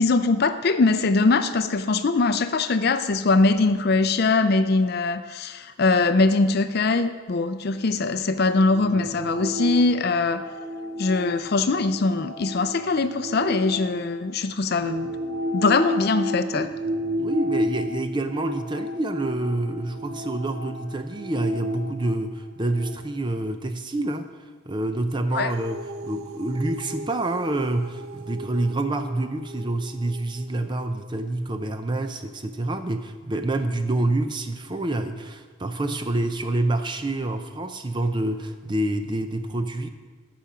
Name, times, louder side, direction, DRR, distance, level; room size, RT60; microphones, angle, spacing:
voice 1, 0.0-10.4 11.0-15.1 15.5-16.7 25.3-25.5, left 3 dB, 50° left, 10 dB, 0.5 m, -22 dB
sound 1, 8.4-14.2 14.7-22.9, equal, 40° right, 3.1 m, -32 dB
voice 2, 17.2-24.3 24.7-39.9, right 2 dB, 20° right, 8 dB, 0.5 m, -27 dB
sound 2, 25.5-31.1, right 2 dB, 85° right, 0.5 m, -40 dB
14.0 x 5.8 x 5.0 m, 1.5 s
head